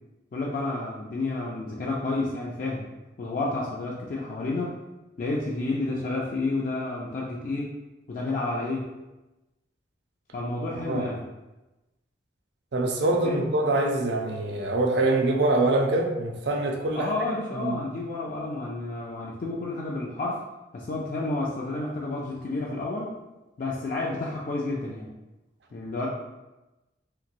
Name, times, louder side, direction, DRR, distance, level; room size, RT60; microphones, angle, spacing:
voice 1, 0.3-2.9 3.2-4.8 5.2-7.7 8.1-8.9 10.3-11.2 13.2-13.5 16.9-20.4 20.7-23.1 23.6-25.1 25.7-26.1, left 2 dB, 45° left, -4 dB, 0.3 m, -30 dB
voice 2, 12.7-17.1 17.6-17.8, right 2 dB, 65° right, 2 dB, 0.5 m, -24 dB
2.9 x 2.9 x 2.5 m, 1.0 s
head